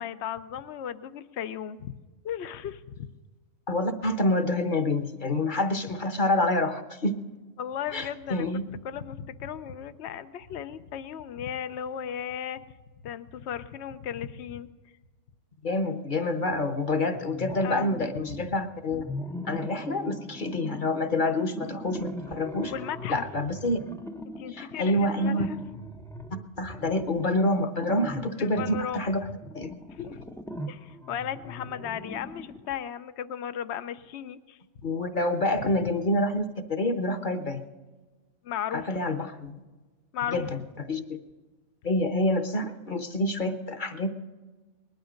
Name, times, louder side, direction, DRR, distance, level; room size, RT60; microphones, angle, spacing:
voice 1, 0.0-1.9 2.2-3.1 5.9-6.0 7.6-12.6 13.0-14.7 17.6-17.9 18.4-18.5 22.7-23.2 24.4-25.6 28.4-29.1 29.9-30.2 30.7-34.6 38.4-39.0 40.1-40.5, left 9 dB, 65° left, 12 dB, 0.9 m, -35 dB
voice 2, 3.7-7.2 7.9-8.6 15.6-19.0 19.5-22.7 23.1-23.8 24.5-25.5 26.6-29.2 29.5-30.2 34.8-37.6 38.7-39.5 40.3-40.6 40.9-41.2 41.8-44.1, left 1 dB, 40° left, 9 dB, 1.1 m, -27 dB
sound 1, 17.1-18.5 18.9-32.8, left 1 dB, 5° left, 0.4 m, -40 dB
19.5 x 12.0 x 5.1 m, 1.3 s
omnidirectional pair, 1.3 m